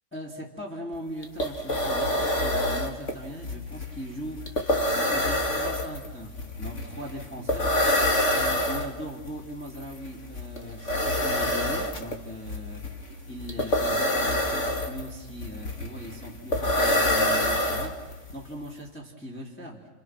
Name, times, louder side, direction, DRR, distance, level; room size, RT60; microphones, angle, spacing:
voice 1, 0.1-7.8 8.3-13.0 13.3-19.8, equal, 5° left, -3 dB, 1.9 m, -39 dB
sound 1, 0.9-1.0 1.2-18.3, left 1 dB, 45° left, 0.9 m, -26 dB
30.0 x 29.5 x 6.1 m, 1.2 s
omnidirectional pair, 5.6 m